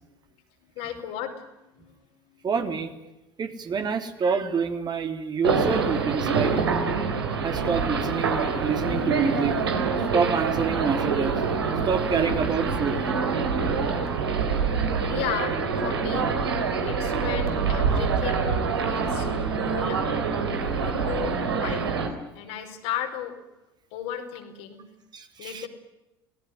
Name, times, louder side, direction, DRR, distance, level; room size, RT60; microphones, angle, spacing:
voice 1, 0.6-2.5 15.1-16.3 16.9-19.3 19.6-20.2 20.8-21.9 22.3-23.3 23.9-24.8 25.4-25.7, left 10 dB, 60° left, 4 dB, 4.8 m, -35 dB
voice 2, 2.4-2.9 3.4-6.6 7.4-9.6 10.1-11.4 11.8-13.0 25.1-25.7, right 5 dB, 35° right, 6 dB, 3.3 m, -27 dB
sound 1, 5.4-22.1, right 5 dB, 80° right, 3.7 m, -26 dB
26.5 x 18.5 x 9.7 m, 0.97 s
figure-of-eight pair, 70°, 13 cm